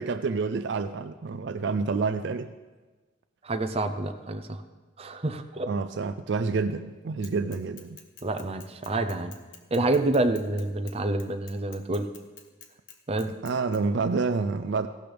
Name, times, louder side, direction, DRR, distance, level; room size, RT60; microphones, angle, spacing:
voice 1, 0.0-2.5 5.7-8.0 13.4-14.9, right 4 dB, 60° right, 10 dB, 0.4 m, -28 dB
voice 2, 3.4-4.6 5.0-5.7 8.2-9.3 9.7-12.1 13.1-13.3, right 2 dB, 30° right, 7 dB, 0.7 m, -28 dB
Bicycle / Mechanisms, 7.2-13.8, left 7 dB, 75° left, 1.2 m, -49 dB
16.0 x 12.0 x 3.5 m, 1.3 s
head